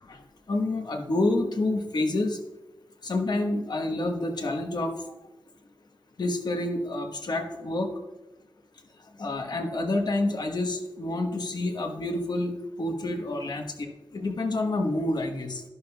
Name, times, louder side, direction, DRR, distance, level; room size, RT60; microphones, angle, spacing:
voice 1, 0.5-2.4 3.0-4.9 6.2-7.9 9.2-15.6, left 2 dB, 60° left, 4 dB, 1.2 m, -28 dB
12.0 x 11.0 x 2.3 m, 1.0 s
wide cardioid pair, 100°, 8 cm